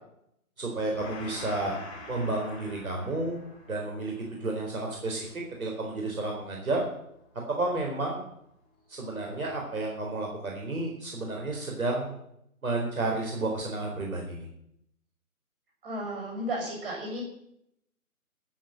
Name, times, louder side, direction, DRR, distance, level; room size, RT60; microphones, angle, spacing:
voice 1, 0.6-1.8 2.1-4.1 4.4-5.3 5.6-6.8 7.6-8.2 8.9-12.2 12.6-14.5, right 2 dB, 70° right, 0 dB, 4.2 m, -31 dB
Gong, 0.9-7.9, left 2 dB, 15° left, 2.1 m, -47 dB
voice 2, 15.8-17.2, right 1 dB, 40° right, 0 dB, 7.0 m, -33 dB
13.0 x 8.2 x 7.5 m, 0.75 s
figure-of-eight pair, 155°, 44 cm